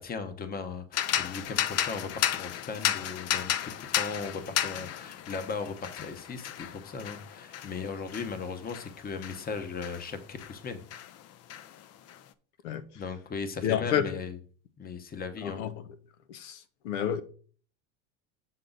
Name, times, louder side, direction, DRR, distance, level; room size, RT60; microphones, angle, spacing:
voice 1, 0.0-10.8 12.7-14.4 14.8-15.7, left 5 dB, 25° left, 1.0 m, -37 dB
sound 1, 0.9-10.6 10.9-12.2, left 11 dB, 45° left, 0.6 m, -33 dB
voice 2, 13.6-14.2 15.4-15.7 16.3-17.2, left 9 dB, 85° left, 0.8 m, -30 dB
6.9 x 5.7 x 3.9 m
supercardioid pair, 115°, 35 cm